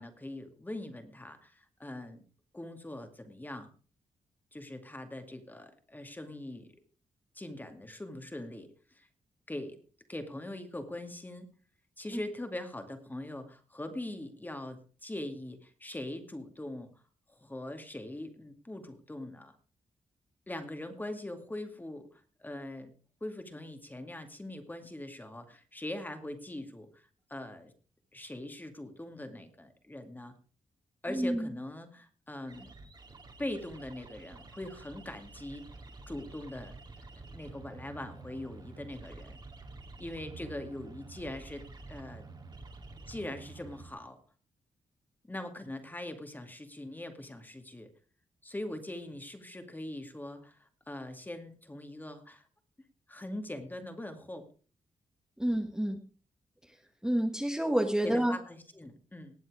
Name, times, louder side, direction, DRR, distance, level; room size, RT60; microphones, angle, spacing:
voice 1, 0.0-2.2 2.5-3.7 4.5-6.8 7.3-9.1 9.5-9.8 10.1-11.5 12.0-16.9 17.3-19.5 20.5-22.9 23.2-27.7 28.1-30.3 31.0-32.7 33.4-35.6 36.1-36.7 37.1-39.4 40.0-42.2 43.1-44.2 45.2-47.9 48.4-52.4 53.1-54.5 58.0-59.4, left 1 dB, 15° left, 7 dB, 2.3 m, -42 dB
voice 2, 31.1-31.5 55.4-56.0 57.0-58.3, right 1 dB, 5° right, 2 dB, 1.6 m, -28 dB
sound 1, 32.5-43.9, right 3 dB, 35° right, 2.5 m, -49 dB
19.0 x 7.8 x 4.9 m, 0.40 s
cardioid pair, 95°, 13 cm